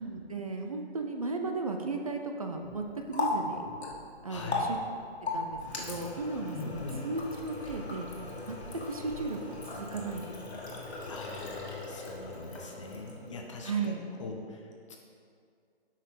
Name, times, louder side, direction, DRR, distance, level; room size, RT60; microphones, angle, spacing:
voice 1, 0.0-3.7 4.2-4.8 5.3-8.1 8.5-8.6 8.9-9.4 9.7-10.8 13.6-14.0, right 3 dB, 35° right, 3 dB, 0.5 m, -35 dB
Water tap faucet, 2.6-13.4, left 3 dB, 75° left, 1.9 m, -38 dB
voice 2, 4.3-4.7 6.5-7.1 11.0-13.9 14.2-15.0, left 3 dB, 30° left, 1 dB, 0.9 m, -42 dB
8.8 x 5.7 x 4.7 m, 2.3 s
hypercardioid pair, 165°, 33 cm